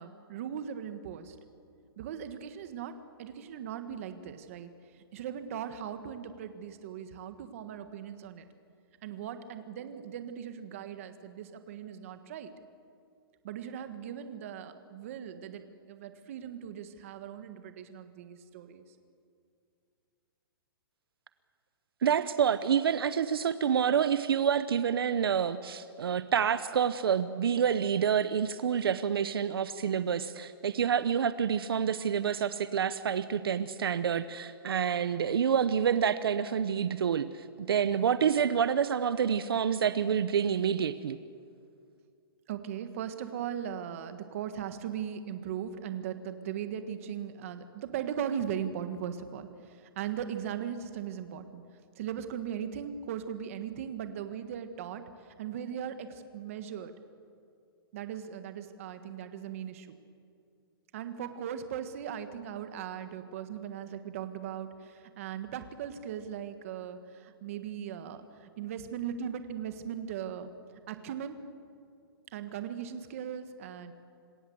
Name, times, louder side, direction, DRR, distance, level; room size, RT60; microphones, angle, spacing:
voice 1, 0.0-1.3 2.0-4.7 5.1-8.4 9.0-12.5 13.4-18.8 42.5-51.6 51.9-55.0 55.4-56.9 57.9-59.9 60.9-70.5 70.9-71.4 72.3-73.9, right 9 dB, 35° right, 9 dB, 1.6 m, -38 dB
voice 2, 22.0-41.2, right 8 dB, 70° right, 13 dB, 0.9 m, -28 dB
26.5 x 20.5 x 7.9 m, 2.4 s
hypercardioid pair, 175°, 13 cm